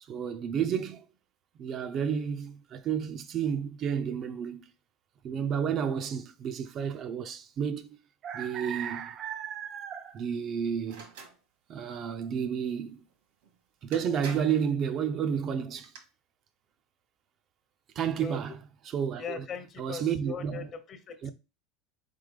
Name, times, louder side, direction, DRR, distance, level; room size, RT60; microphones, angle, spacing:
voice 1, 0.1-1.0 1.6-4.7 5.2-7.9 8.2-11.0 11.7-13.0 13.8-15.9 18.0-18.6 18.9-19.5 19.8-20.7 21.2-21.3, right 7 dB, 40° right, 0.4 m, -31 dB
sound 1, 10.9-11.4 13.4-13.5 13.9-14.7 15.6-16.0, right 5 dB, 85° right, 1.6 m, -45 dB
voice 2, 19.2-21.3, left 5 dB, 35° left, 0.8 m, -40 dB
3.9 x 3.7 x 3.2 m
supercardioid pair, 135°, 0 cm